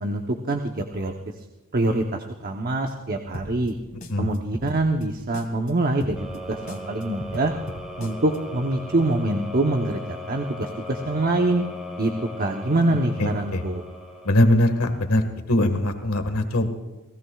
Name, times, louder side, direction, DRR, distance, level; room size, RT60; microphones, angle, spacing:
voice 1, 0.0-1.4 1.7-3.7 4.2-6.2 6.5-7.5 8.0-11.6 12.0-12.1 12.4-13.8, right 2 dB, 45° right, 4 dB, 0.9 m, -25 dB
sound 1, 3.3-5.7 6.0-8.4, equal, 40° left, 1.9 m, -38 dB
sound 2, 6.2-15.1, left 1 dB, ahead, 2.1 m, -38 dB
voice 2, 13.2-13.6 14.2-16.7, left 1 dB, 85° left, 7 dB, 1.7 m, -21 dB
29.5 x 17.0 x 2.4 m, 1.1 s
head